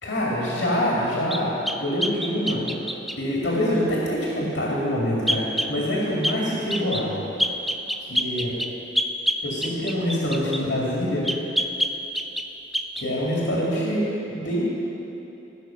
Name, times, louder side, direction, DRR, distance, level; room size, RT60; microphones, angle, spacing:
voice 1, 0.0-1.5 1.8-2.6 3.2-7.2 8.0-8.5 9.4-11.3 13.0-14.7, equal, 75° left, -5 dB, 2.4 m, -25 dB
sound 1, 1.3-3.2 5.3-5.7 6.2-6.4 6.7-7.1 7.4-10.6 11.2-12.5 12.7-13.1, equal, ahead, 0.4 m, -26 dB
15.5 x 6.6 x 5.8 m, 3.0 s
head